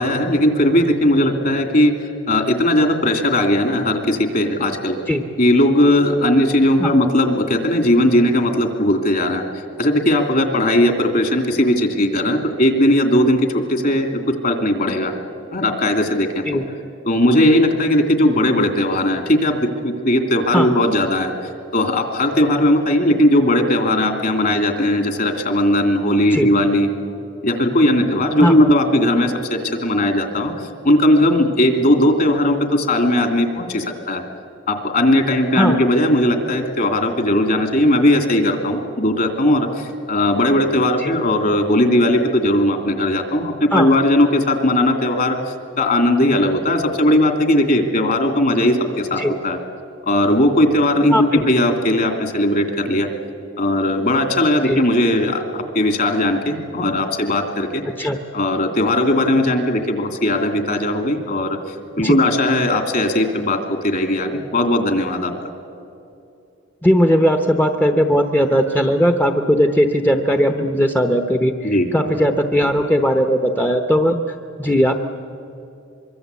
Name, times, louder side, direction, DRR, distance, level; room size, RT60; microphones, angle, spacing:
voice 1, 0.0-5.0 5.4-15.1 15.5-16.6 17.1-26.9 27.4-30.5 30.8-34.2 34.7-49.6 50.1-53.1 53.6-57.8 58.3-61.6 62.0-65.3 71.6-71.9, left 1 dB, 50° left, 5 dB, 2.8 m, -18 dB
voice 2, 51.1-51.4 54.6-54.8 58.0-58.2 62.0-62.2 66.8-75.0, equal, 10° left, 6 dB, 0.9 m, -18 dB
24.5 x 23.5 x 8.3 m, 2.7 s
head